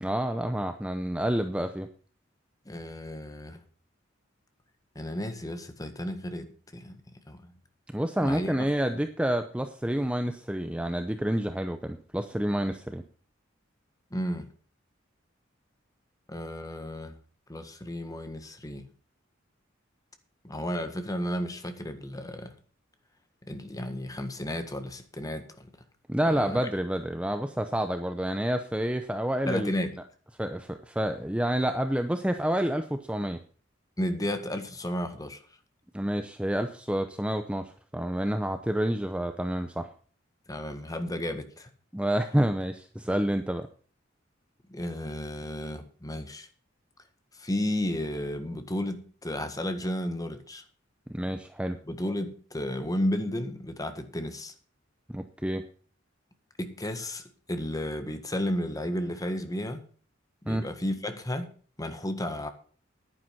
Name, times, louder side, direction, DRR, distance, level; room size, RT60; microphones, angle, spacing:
voice 1, 0.0-1.9 7.9-13.0 26.1-29.7 30.4-33.4 35.9-39.9 41.9-43.7 51.1-51.8 55.1-55.6 60.5-60.7, right 1 dB, 5° right, 0.7 m, -29 dB
voice 2, 2.6-3.6 4.9-7.0 7.3-7.6 8.2-8.5 8.9-9.0 14.1-14.5 16.3-17.2 17.5-18.9 20.4-22.5 23.5-25.7 26.3-26.6 29.5-30.0 34.0-35.4 40.5-41.7 44.7-46.5 47.3-50.6 51.9-54.5 56.6-59.8 60.4-62.5, left 1 dB, 20° left, 1.6 m, -33 dB
10.5 x 9.8 x 5.9 m
head